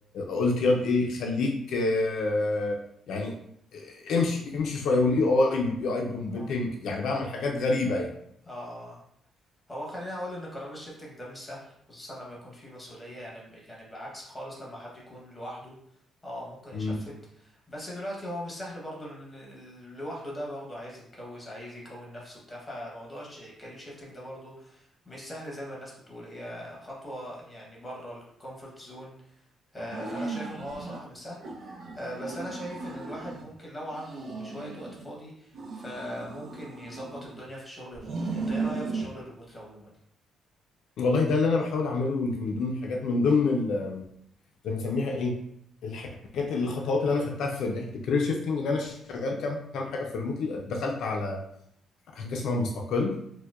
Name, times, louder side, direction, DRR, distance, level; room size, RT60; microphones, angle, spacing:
voice 1, 0.1-2.8 3.1-3.3 3.7-8.1 16.7-17.0 41.0-44.0 44.6-45.4 45.8-46.1 46.3-51.4 52.2-53.2, left 3 dB, 65° left, 1 dB, 0.4 m, -27 dB
voice 2, 8.4-9.0 9.7-15.7 16.2-29.3 29.7-39.9, equal, 10° left, -4 dB, 0.9 m, -40 dB
sound 1, 29.8-31.0 31.4-33.5 33.9-35.1 35.5-37.5 37.9-39.1, right 3 dB, 70° right, 0.6 m, -36 dB
4.4 x 2.1 x 2.4 m, 0.71 s
cardioid pair, 170°, 0 cm